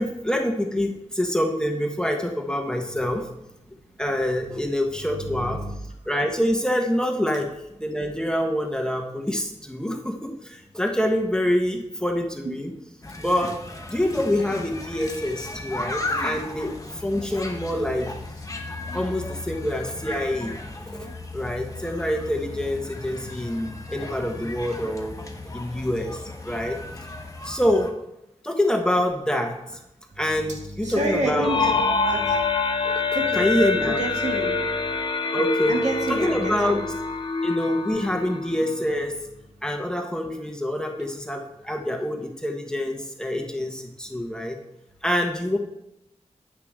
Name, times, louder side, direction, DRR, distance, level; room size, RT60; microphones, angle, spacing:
voice 1, 0.0-3.3 4.0-5.6 6.1-7.5 7.8-12.7 13.2-13.6 13.9-18.1 18.9-20.6 20.9-21.1 21.3-25.2 25.5-26.8 27.4-27.9 28.4-29.6 30.2-31.7 32.8-33.0 33.3-34.0 35.3-35.8 36.1-36.8 37.4-39.1 39.6-44.6 45.0-45.6, left 1 dB, 5° left, 2 dB, 1.2 m, -26 dB
sound 1, 13.0-27.9, left 2 dB, 25° left, 1.2 m, -35 dB
voice 2, 30.8-32.4 33.1-33.5 33.8-34.6 35.7-36.9, right 1 dB, 75° right, -1 dB, 2.3 m, -28 dB
sound 2, 31.4-39.1, left 3 dB, 45° left, 0.8 m, -25 dB
9.6 x 9.4 x 3.7 m, 0.86 s
wide cardioid pair, 85°, 12 cm